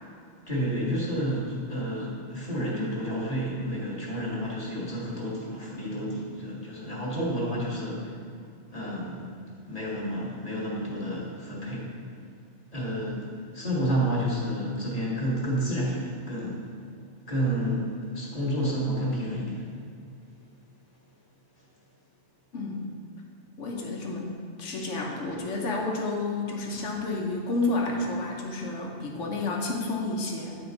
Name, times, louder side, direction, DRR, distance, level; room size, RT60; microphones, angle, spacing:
voice 1, 0.5-8.1 8.7-9.3 9.7-11.9 12.7-16.7 17.3-19.6, equal, 30° left, -5 dB, 1.6 m, -30 dB
voice 2, 23.6-24.3 24.6-30.6, left 2 dB, 85° left, 0 dB, 1.3 m, -30 dB
9.5 x 4.5 x 4.0 m, 2.3 s
omnidirectional pair, 1.2 m